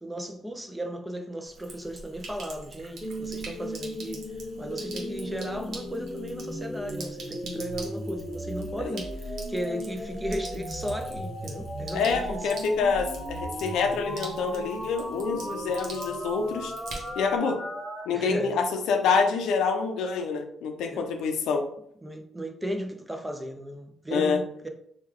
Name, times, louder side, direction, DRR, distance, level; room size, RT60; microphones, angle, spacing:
voice 1, 0.0-4.2 4.6-12.5 18.1-18.6 20.9-21.0 22.0-24.7, equal, 10° right, 0.5 m, -35 dB
Sink (filling or washing), 1.4-17.4, right 2 dB, 70° right, 0.9 m, -45 dB
sound 1, 3.0-18.0, equal, 10° left, 1.0 m, -36 dB
voice 2, 11.9-16.7 17.2-17.6 18.1-21.6 24.1-24.4, left 5 dB, 80° left, 0.5 m, -26 dB
3.1 x 2.3 x 3.6 m
cardioid pair, 90°, 0 cm